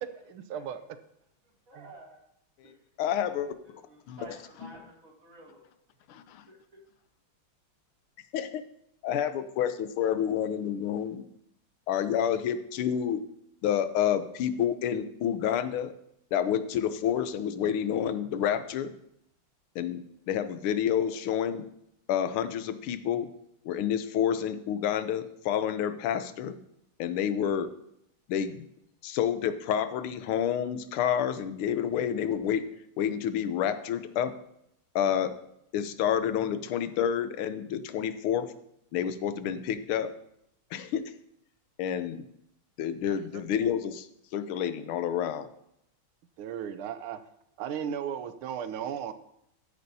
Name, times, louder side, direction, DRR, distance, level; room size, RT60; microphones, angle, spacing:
voice 1, 0.2-0.8 1.8-1.9 43.1-43.2 46.4-47.2 47.6-49.1, right 8 dB, 85° right, 11 dB, 1.6 m, -35 dB
voice 2, 1.7-2.2 2.6-2.8 3.6-5.7 6.5-6.8, right 2 dB, 40° right, -3 dB, 3.0 m, -51 dB
voice 3, 3.0-3.5 4.1-4.3 6.1-6.4 8.3-8.6 9.0-11.2 11.9-13.2 13.6-15.9 16.3-18.9 19.7-21.6 22.1-23.3 23.6-26.6 27.0-27.7 28.3-28.7 29.0-32.7 33.0-34.3 34.9-35.3 35.7-38.5 38.9-40.1 40.7-41.0 41.8-42.3 42.8-44.1 44.3-45.5, left 9 dB, 90° left, 11 dB, 1.6 m, -29 dB
14.0 x 9.7 x 2.7 m, 0.76 s
omnidirectional pair, 2.3 m